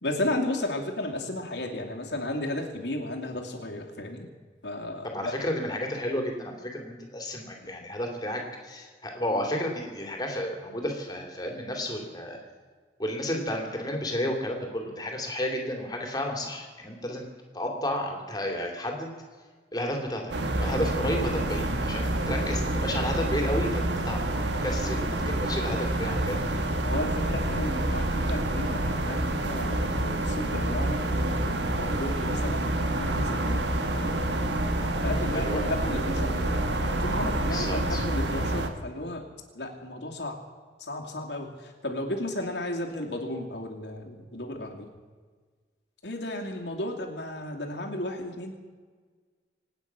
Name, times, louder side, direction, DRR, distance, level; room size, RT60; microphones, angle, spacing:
voice 1, 0.0-4.3 4.6-5.3 7.6-7.7 21.0-21.1 26.8-31.0 31.8-34.2 35.0-39.3 39.5-40.4 40.8-44.9 46.0-48.5, left 1 dB, 85° left, 1 dB, 2.7 m, -34 dB
voice 2, 5.0-12.4 13.0-17.3 17.5-19.1 19.7-20.3 20.6-24.2 24.6-26.5 35.3-35.6 37.5-38.0, left 1 dB, 20° left, 2 dB, 2.8 m, -32 dB
sound 1, 20.3-38.7, right 1 dB, 85° right, 1.5 m, -28 dB
26.0 x 9.3 x 6.0 m, 1.5 s
head